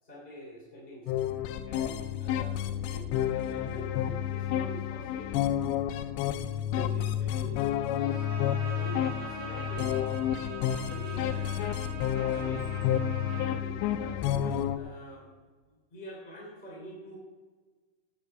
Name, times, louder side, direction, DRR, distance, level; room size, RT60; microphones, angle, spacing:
voice 1, 0.0-1.2 1.6-2.5 2.9-5.5 6.7-7.7 8.7-10.1 10.8-11.8 12.3-12.7 13.3-15.3 15.6-17.2, right 1 dB, 15° left, -5 dB, 2.6 m, -46 dB
sound 1, 1.1-14.8, left 10 dB, 90° left, 3.0 m, -30 dB
Bowed string instrument, 8.0-13.6, right 4 dB, 80° right, 4.1 m, -42 dB
Drawer open or close, 10.2-11.0 11.6-15.1 15.4-15.5, right 1 dB, 20° right, 1.6 m, -55 dB
17.5 x 8.1 x 4.8 m, 1.4 s
omnidirectional pair, 5.0 m